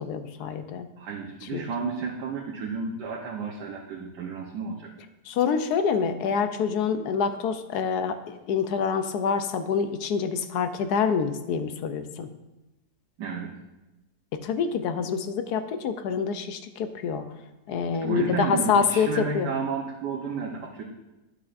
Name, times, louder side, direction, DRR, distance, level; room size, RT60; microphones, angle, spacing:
voice 1, 0.0-0.9 1.5-1.7 5.2-12.3 14.3-17.3 17.7-19.5, left 6 dB, 75° left, 9 dB, 1.1 m, -26 dB
voice 2, 1.0-4.9 13.2-13.5 18.0-20.8, right 5 dB, 80° right, -2 dB, 1.5 m, -32 dB
12.0 x 6.3 x 2.5 m, 1.0 s
omnidirectional pair, 1.8 m